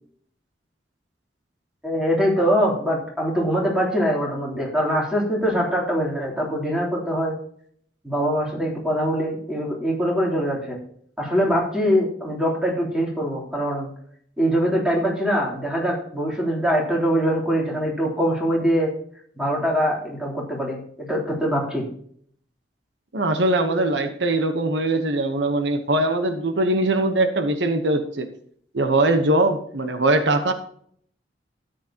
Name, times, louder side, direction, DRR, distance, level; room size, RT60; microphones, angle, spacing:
voice 1, 1.8-7.3 8.0-10.8 11.2-13.9 14.4-18.9 19.3-21.9, equal, 5° right, -3 dB, 3.3 m, -23 dB
voice 2, 23.1-28.3 28.7-30.5, right 2 dB, 85° right, 7 dB, 1.1 m, -21 dB
13.0 x 9.3 x 2.9 m, 0.63 s
head